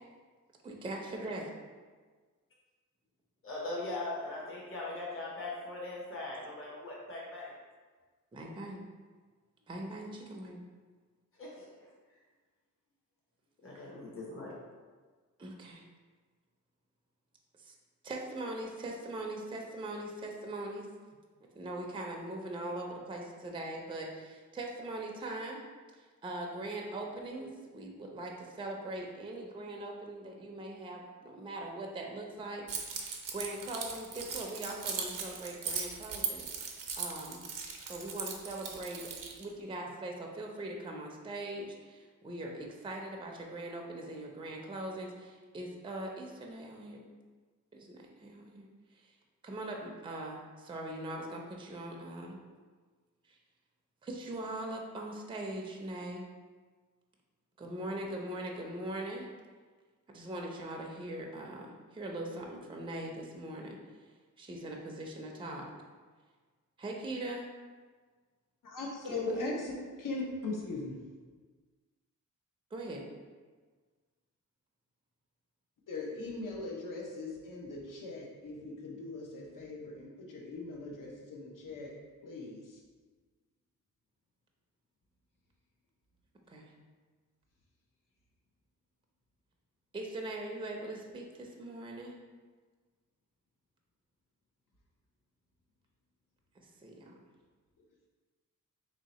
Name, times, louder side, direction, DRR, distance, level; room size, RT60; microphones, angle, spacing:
voice 1, 0.6-1.5 8.3-8.8 9.7-10.6 15.4-15.8 17.6-17.7 18.0-20.9 21.5-25.6 25.9-37.4 37.8-39.1 39.4-47.0 47.7-48.7 48.9-49.1 49.4-52.4 53.3-53.4 54.0-56.3 57.6-59.3 60.1-63.8 64.4-65.7 66.8-67.5 69.1-69.4 72.7-73.0 86.5-86.7 89.9-92.2 96.6-97.1, right 1 dB, 15° right, 0 dB, 0.4 m, -41 dB
voice 2, 3.4-7.5 11.4-11.7 13.6-14.5, left 2 dB, 40° left, -4 dB, 0.9 m, -40 dB
Keys jangling, 32.7-39.4, right 6 dB, 85° right, 0.6 m, -39 dB
voice 3, 68.6-70.9 75.9-81.9 82.2-82.8, left 3 dB, 80° left, -2 dB, 0.8 m, -39 dB
3.1 x 2.7 x 4.1 m, 1.4 s
wide cardioid pair, 130°, 32 cm